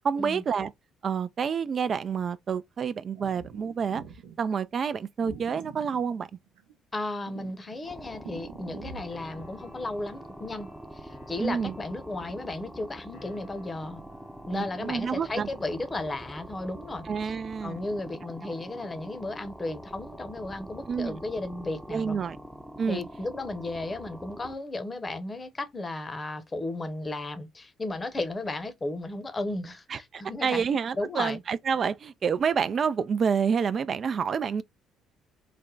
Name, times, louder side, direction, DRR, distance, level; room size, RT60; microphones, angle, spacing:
voice 1, 0.0-0.7 1.0-4.0 4.4-6.3 11.4-11.8 14.5-15.5 17.1-17.8 18.4-18.5 20.9-21.2 21.9-22.4 22.8-23.0 29.9-34.6, right 6 dB, 50° right, 0.3 m, -28 dB
sound 1, 3.2-4.4 5.2-6.8 7.3-9.4, right 6 dB, 85° right, 0.8 m, -45 dB
voice 2, 6.9-14.0 14.5-17.3 17.6-22.2 22.9-30.6 30.9-31.4, left 2 dB, 30° left, 0.8 m, -34 dB
sound 2, 7.8-24.6, equal, 5° right, 0.6 m, -44 dB
sound 3, 9.1-17.1, left 3 dB, 75° left, 1.8 m, -55 dB
3.3 x 2.1 x 3.7 m
supercardioid pair, 60°, 0 cm